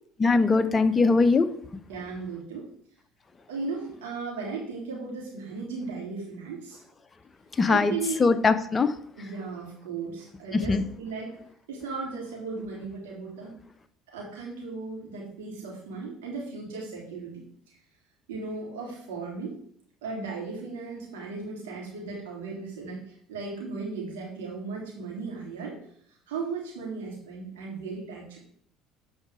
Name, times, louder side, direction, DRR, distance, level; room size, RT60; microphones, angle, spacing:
voice 1, 0.2-1.5 7.6-7.9 8.2-8.9 10.5-10.8, left 4 dB, 25° left, 10 dB, 0.9 m, -21 dB
voice 2, 1.9-2.7 3.5-6.8 7.7-8.2 9.2-11.4 11.7-13.6 14.1-17.3 18.3-19.5 20.0-23.0 23.3-25.8 26.3-28.4, right 4 dB, 80° right, -3 dB, 3.7 m, -36 dB
9.1 x 5.0 x 5.1 m, 0.64 s
hypercardioid pair, 65°, 0 cm